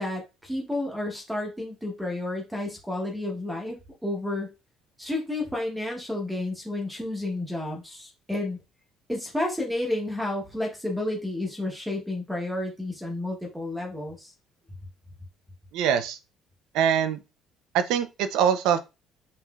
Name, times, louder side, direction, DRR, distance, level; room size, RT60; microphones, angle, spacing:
voice 1, 0.0-3.8 4.0-4.5 5.0-8.6 9.1-14.3, left 1 dB, 5° right, 0.9 m, -31 dB
voice 2, 15.7-16.2 16.7-17.2 17.7-18.8, right 8 dB, 80° right, 0.5 m, -23 dB
5.6 x 3.1 x 2.3 m
cardioid pair, 175°, 0 cm